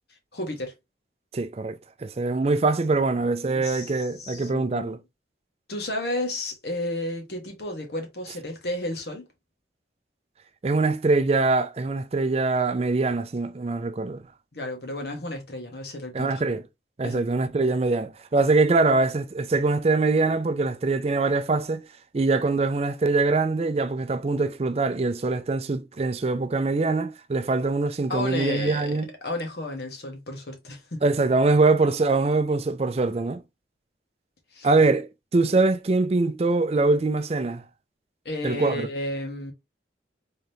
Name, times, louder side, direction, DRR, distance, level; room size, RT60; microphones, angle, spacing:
voice 1, 0.3-0.7 3.5-5.0 5.7-9.2 14.5-16.3 17.0-17.2 28.1-28.9 29.2-31.0 34.5-34.7 38.2-39.5, left 1 dB, 60° left, 1.3 m, -32 dB
voice 2, 1.3-5.0 10.6-14.2 16.1-16.6 17.0-21.8 22.1-29.1 31.0-33.4 34.6-37.6 38.4-38.7, right 3 dB, 35° right, 0.4 m, -23 dB
3.8 x 3.4 x 2.8 m
head